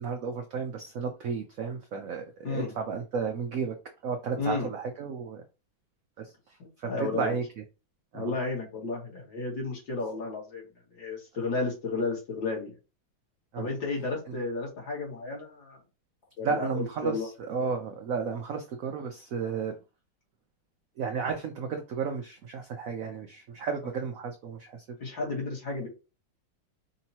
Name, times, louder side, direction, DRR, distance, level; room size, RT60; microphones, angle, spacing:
voice 1, 0.0-3.8 4.0-5.4 6.2-7.4 8.1-8.3 13.5-13.7 16.4-17.2 17.5-19.7 21.0-24.8 25.2-25.3, right 5 dB, 75° right, 0.7 m, -33 dB
voice 2, 4.4-4.7 6.6-7.3 8.1-10.6 10.9-12.8 13.6-15.8 16.4-17.3 25.0-25.9, left 3 dB, 65° left, 2.7 m, -33 dB
5.2 x 2.9 x 2.8 m
omnidirectional pair, 2.2 m